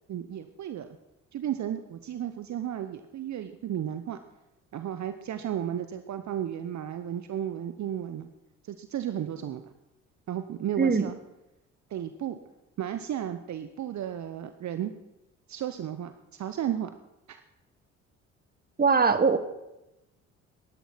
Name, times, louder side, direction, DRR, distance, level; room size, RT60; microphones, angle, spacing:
voice 1, 0.1-1.0 1.3-4.2 4.7-8.3 8.6-9.7 10.3-11.2 11.9-12.4 12.8-14.9 15.5-16.9 17.3-17.4, right 10 dB, 50° right, 10 dB, 1.0 m, -34 dB
voice 2, 18.8-19.4, right 5 dB, 25° right, 11 dB, 1.5 m, -21 dB
15.5 x 11.5 x 5.8 m, 0.93 s
hypercardioid pair, 50°, 38 cm